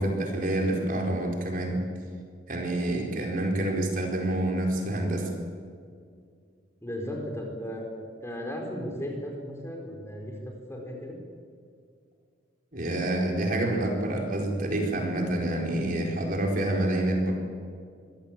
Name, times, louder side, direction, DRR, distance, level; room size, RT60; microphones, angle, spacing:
voice 1, 0.0-1.8 2.5-5.3 12.7-17.3, right 1 dB, 50° right, 1 dB, 4.5 m, -27 dB
voice 2, 6.8-11.2, equal, 15° left, 1 dB, 4.4 m, -36 dB
24.5 x 17.0 x 9.0 m, 2.2 s
head